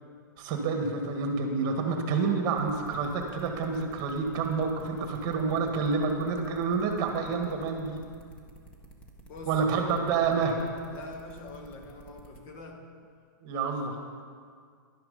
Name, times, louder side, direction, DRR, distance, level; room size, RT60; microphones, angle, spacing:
voice 1, 0.4-8.0 9.5-10.6 13.4-14.0, right 4 dB, 35° right, 3 dB, 1.8 m, -28 dB
sound 1, 2.6-12.4, right 1 dB, 10° left, 1.6 m, -51 dB
voice 2, 9.2-9.5 10.9-12.9, left 3 dB, 40° left, 3 dB, 1.8 m, -44 dB
11.5 x 10.5 x 5.4 m, 2.1 s
hypercardioid pair, 135°, 11 cm